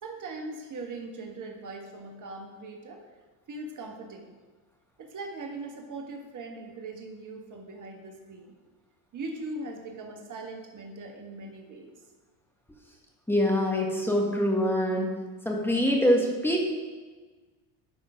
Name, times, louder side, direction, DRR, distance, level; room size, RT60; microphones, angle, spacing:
voice 1, 0.0-3.0 3.5-4.3 5.0-8.5 9.1-11.9, right 2 dB, 45° right, 2 dB, 1.5 m, -40 dB
voice 2, 13.3-15.1 15.4-16.6, equal, 5° left, -1 dB, 1.5 m, -24 dB
11.0 x 3.9 x 4.9 m, 1.4 s
supercardioid pair, 80°, 44 cm